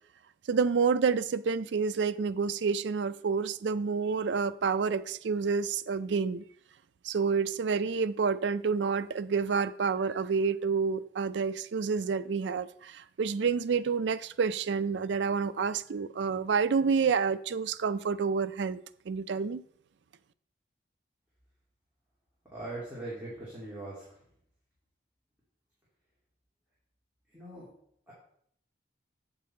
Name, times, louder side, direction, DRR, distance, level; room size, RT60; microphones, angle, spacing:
voice 1, 0.5-6.4 7.0-18.8 19.1-19.6, right 5 dB, 75° right, 0.4 m, -29 dB
voice 2, 22.5-24.0 27.3-27.7 28.1-28.2, right 2 dB, 10° right, 2.4 m, -40 dB
8.4 x 6.8 x 4.3 m
head